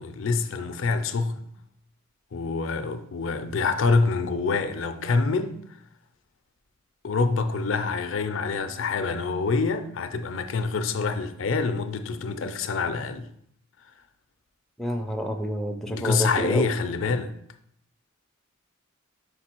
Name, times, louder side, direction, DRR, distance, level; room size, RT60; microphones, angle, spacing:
voice 1, 0.0-1.5 2.3-5.6 7.0-13.3 15.9-17.3, left 4 dB, 65° left, 0.5 m, -26 dB
voice 2, 14.8-16.7, equal, ahead, 0.4 m, -29 dB
5.2 x 4.4 x 4.4 m
head